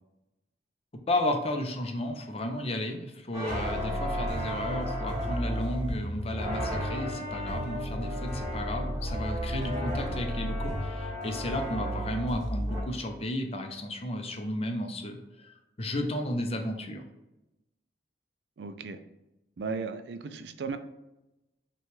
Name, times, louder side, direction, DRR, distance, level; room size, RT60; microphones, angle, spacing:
voice 1, 1.1-17.0, left 1 dB, 35° left, 5 dB, 0.5 m, -33 dB
sound 1, 3.3-12.8, equal, 20° right, 1.2 m, -32 dB
voice 2, 18.6-19.0 19.6-20.8, right 4 dB, 70° right, 10 dB, 0.4 m, -35 dB
5.8 x 2.3 x 3.1 m, 0.94 s
head